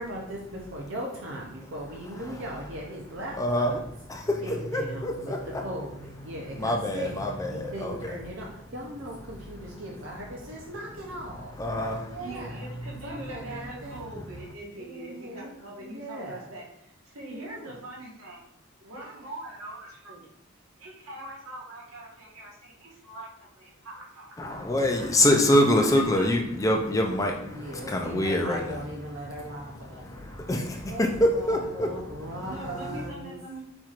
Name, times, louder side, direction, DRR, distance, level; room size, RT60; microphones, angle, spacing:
voice 1, 0.0-3.8 4.4-11.6 12.1-12.7 13.0-14.0 14.8-16.5 17.3-17.8 27.4-30.4 30.9-33.4, right 1 dB, 60° right, -2 dB, 0.7 m, -39 dB
voice 2, 3.4-3.8 4.1-5.6 6.6-8.2 11.6-12.2 12.9-13.1 13.5-13.6 14.1-14.2 24.4-28.8 30.0-31.9 32.6-33.1, left 1 dB, 15° left, 2 dB, 0.4 m, -26 dB
voice 3, 12.2-18.4 18.8-20.3 20.8-24.6 25.4-26.3 32.4-33.6, right 2 dB, 85° right, -4 dB, 1.4 m, -42 dB
4.4 x 4.3 x 2.5 m, 0.78 s
head